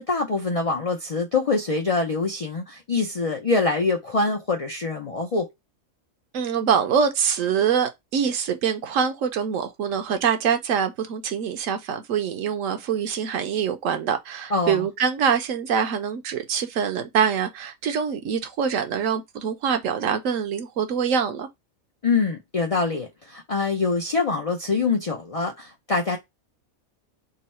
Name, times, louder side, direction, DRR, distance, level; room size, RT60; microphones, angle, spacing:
voice 1, 0.0-5.5 14.5-14.8 22.0-26.2, left 3 dB, 65° left, 0.3 m, -24 dB
voice 2, 6.3-21.5, right 7 dB, 70° right, 1.0 m, -24 dB
3.9 x 2.0 x 4.1 m
omnidirectional pair, 1.5 m